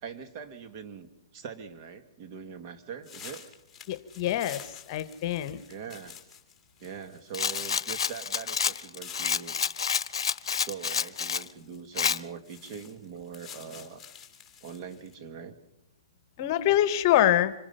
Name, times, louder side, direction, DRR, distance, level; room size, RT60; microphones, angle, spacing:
voice 1, 0.0-3.5 5.7-6.2 6.8-9.6 10.7-14.0 14.6-15.6, right 7 dB, 40° right, 8 dB, 1.9 m, -42 dB
sound 1, 3.0-15.1, left 8 dB, 15° left, 2.6 m, -48 dB
voice 2, 3.9-5.6 16.4-17.5, left 12 dB, 40° left, 15 dB, 1.2 m, -25 dB
Rattle, 7.3-11.5 12.0-12.2, left 6 dB, 80° left, 0.7 m, -29 dB
26.0 x 20.0 x 5.7 m, 0.87 s
hypercardioid pair, 140°, 3 cm